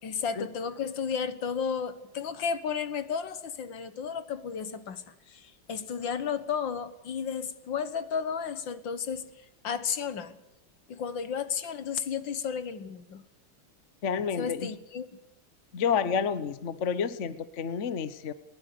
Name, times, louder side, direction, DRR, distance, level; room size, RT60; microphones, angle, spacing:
voice 1, 0.0-5.0 5.3-9.3 9.6-10.4 10.9-13.2 14.4-15.2, left 6 dB, 65° left, 13 dB, 2.0 m, -33 dB
voice 2, 14.0-14.7 15.7-18.3, left 6 dB, 45° left, 13 dB, 1.1 m, -29 dB
22.0 x 20.0 x 6.8 m, 0.87 s
omnidirectional pair, 2.3 m